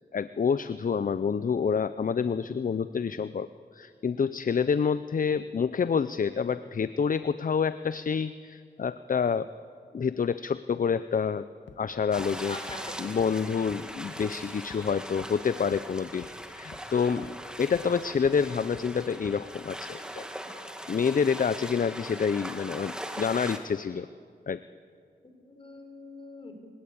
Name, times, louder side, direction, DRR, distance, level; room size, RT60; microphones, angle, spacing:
voice 1, 0.1-3.5 3.7-9.5 9.9-11.5 11.8-12.6 13.0-16.3 16.5-20.2 20.9-24.1 24.5-24.6, left 6 dB, 50° left, 14 dB, 0.5 m, -28 dB
sound 1, 11.7-11.8 12.2-12.3 12.7-12.8 13.2-13.3 13.7-13.8 14.2-14.3 14.7-14.8 15.2-15.3 15.7-15.8 16.2-16.3 16.7-16.8 17.2-17.3 17.7-17.8 18.2-18.3 18.7-18.8 19.2-19.3, left 6 dB, 90° left, 1.7 m, -47 dB
sound 2, 12.1-23.6, equal, 5° right, 2.1 m, -40 dB
voice 2, 12.5-13.2 25.2-26.5, left 2 dB, 30° left, 4 dB, 4.8 m, -43 dB
29.0 x 17.5 x 8.5 m, 2.2 s
wide cardioid pair, 90°, 18 cm